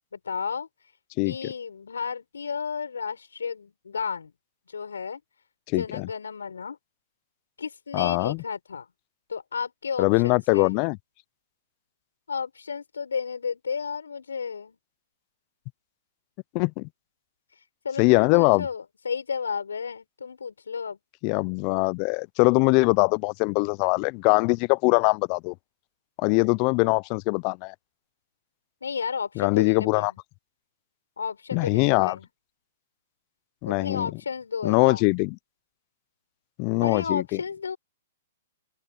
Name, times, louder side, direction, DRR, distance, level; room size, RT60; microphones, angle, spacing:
voice 1, 0.1-0.7 1.2-4.3 4.7-5.2 5.7-6.8 7.6-8.9 9.3-10.8 12.3-14.8 17.5-21.0 28.8-30.1 31.2-32.3 33.7-35.0 36.8-37.8, left 6 dB, 85° left, 7.5 m, -33 dB
voice 2, 5.7-6.1 7.9-8.4 10.0-11.0 16.5-16.9 18.0-18.7 21.2-25.5 26.2-27.7 29.4-30.1 31.5-32.2 33.6-34.1 34.6-35.3 36.6-37.4, left 31 dB, 40° left, 0.7 m, -22 dB
open air
hypercardioid pair, 120°, 0 cm